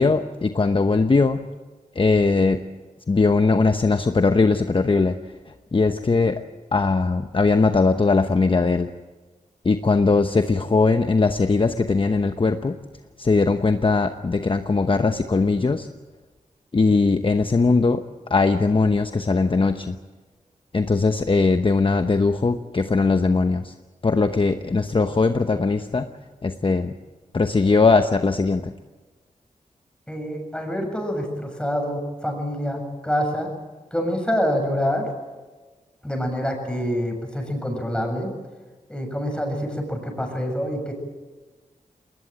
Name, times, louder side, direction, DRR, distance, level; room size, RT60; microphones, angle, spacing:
voice 1, 0.0-1.5 1.9-2.6 3.1-5.2 5.7-6.4 6.7-8.9 9.6-12.8 13.2-15.9 16.7-18.0 18.3-20.0 20.7-23.7 24.0-26.1 26.4-26.9 27.3-28.7, left 3 dB, 35° left, 8 dB, 0.9 m, -20 dB
voice 2, 30.1-33.5 33.9-35.1 36.0-38.3 38.9-40.9, equal, 5° left, 3 dB, 7.3 m, -26 dB
20.5 x 19.5 x 8.8 m, 1.3 s
wide cardioid pair, 70°, 14 cm